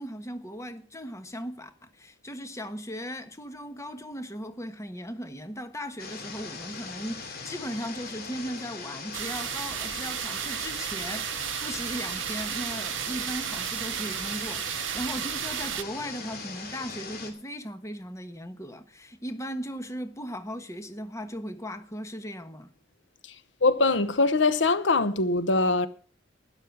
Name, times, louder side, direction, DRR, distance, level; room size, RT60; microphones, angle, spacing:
voice 1, 0.0-22.7, equal, 15° left, 1.2 m, -37 dB
sound 1, 6.0-17.3, left 4 dB, 55° left, 2.9 m, -40 dB
sound 2, 9.1-15.8, right 12 dB, 70° right, 0.6 m, -33 dB
voice 2, 23.6-25.9, left 3 dB, 70° left, 0.9 m, -22 dB
12.5 x 11.0 x 6.0 m
head